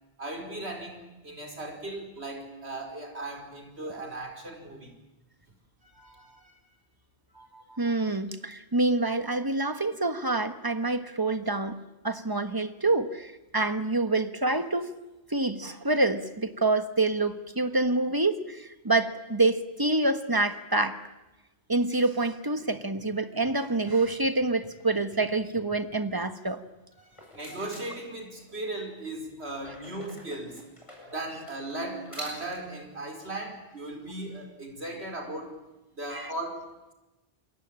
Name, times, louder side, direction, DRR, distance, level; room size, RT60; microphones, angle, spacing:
voice 1, 0.2-5.0 5.8-6.5 27.0-30.6 31.1-35.6 36.0-36.7, right 2 dB, 90° right, 3 dB, 5.2 m, -37 dB
voice 2, 7.4-14.9 15.3-21.0 21.7-26.6 36.1-36.3, right 2 dB, 20° right, 10 dB, 1.4 m, -27 dB
sound 1, 27.0-28.6 29.6-32.8, equal, 30° left, 7.3 m, -46 dB
28.0 x 22.0 x 8.9 m, 1.0 s
omnidirectional pair, 1.1 m